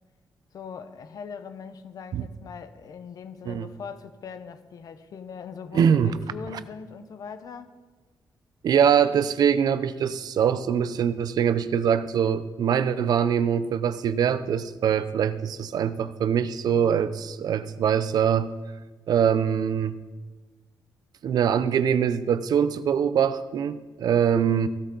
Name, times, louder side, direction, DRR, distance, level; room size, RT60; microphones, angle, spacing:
voice 1, 0.5-7.7, left 6 dB, 60° left, 1.1 m, -41 dB
voice 2, 5.7-6.2 8.6-18.5 19.1-20.0 21.2-24.7, right 8 dB, 65° right, 0.6 m, -23 dB
16.0 x 12.5 x 4.0 m
cardioid pair, 135°, 7 cm